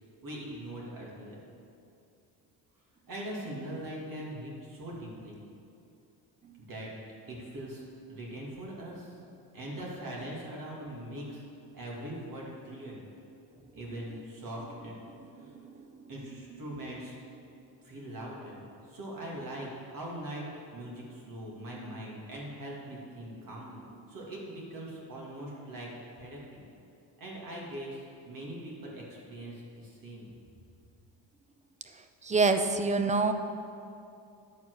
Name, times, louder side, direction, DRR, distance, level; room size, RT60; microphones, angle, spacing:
voice 1, 0.2-1.4 3.1-5.4 6.6-6.9 7.3-9.1 9.5-11.4 11.7-13.0 13.7-14.9 15.4-15.5 16.1-17.2 17.8-20.4 20.7-25.9 26.1-26.6 27.2-30.3, right 1 dB, 55° right, -3 dB, 2.4 m, -41 dB
voice 2, 32.2-33.3, right 3 dB, 20° right, 8 dB, 0.5 m, -26 dB
10.5 x 4.5 x 6.2 m, 2.6 s
cardioid pair, 110°, 41 cm